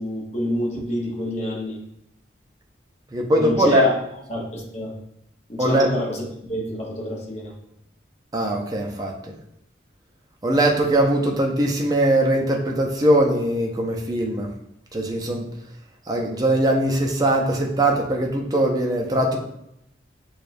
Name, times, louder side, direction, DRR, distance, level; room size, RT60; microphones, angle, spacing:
voice 1, 0.0-1.8 3.4-3.9 4.3-5.0 5.5-7.6, left 1 dB, 35° left, -3 dB, 0.8 m, -27 dB
voice 2, 3.1-3.9 5.6-5.9 8.3-9.3 10.4-14.5 14.9-15.5 16.1-19.4, right 1 dB, 20° right, 1 dB, 0.5 m, -21 dB
6.6 x 2.3 x 2.5 m, 0.78 s
head